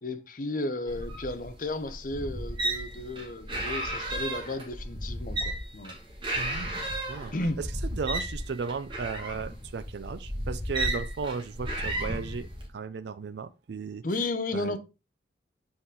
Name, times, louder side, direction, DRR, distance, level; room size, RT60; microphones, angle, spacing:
voice 1, 0.0-6.0 7.3-7.6 14.0-14.8, left 2 dB, 45° left, 0.7 m, -33 dB
sound 1, 0.9-12.7, right 1 dB, 25° right, 1.7 m, -34 dB
voice 2, 6.4-6.8 7.1-12.5 12.7-14.0 14.5-14.8, right 5 dB, 65° right, 0.4 m, -35 dB
7.7 x 4.1 x 3.7 m
head